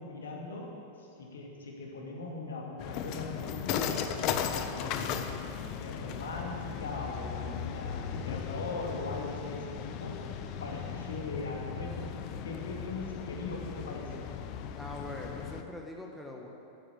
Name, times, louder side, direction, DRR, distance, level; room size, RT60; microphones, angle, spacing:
voice 1, 0.0-5.3 5.7-10.3 10.6-12.1 12.4-14.2, left 3 dB, 65° left, 0 dB, 2.3 m, -40 dB
sound 1, 2.8-15.6, left 8 dB, 40° left, 0.8 m, -37 dB
voice 2, 14.8-16.5, left 1 dB, ahead, -1 dB, 1.5 m, -42 dB
12.0 x 9.7 x 8.6 m, 2.7 s
figure-of-eight pair, 90°, 0 cm